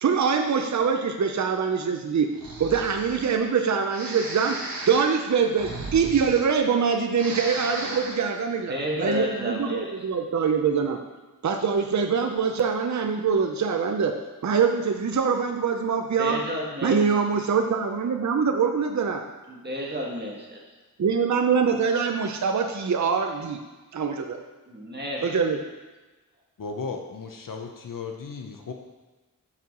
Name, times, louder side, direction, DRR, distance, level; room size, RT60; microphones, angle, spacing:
voice 1, 0.0-2.3 2.6-4.6 4.9-11.0 11.4-14.1 14.4-16.4 16.8-19.2 21.0-23.6 23.9-24.4 25.2-25.6, right 6 dB, 55° right, 4 dB, 0.6 m, -24 dB
Breathing, 2.3-3.4 3.9-6.8 7.1-8.3, right 2 dB, 80° right, 1.1 m, -36 dB
voice 2, 8.7-9.9 16.2-17.0 19.5-20.6 24.7-25.3, equal, 30° right, -3 dB, 1.6 m, -31 dB
voice 3, 26.6-28.7, left 4 dB, 65° left, 3 dB, 0.7 m, -35 dB
5.8 x 4.6 x 6.0 m, 1.2 s
wide cardioid pair, 80°, 35 cm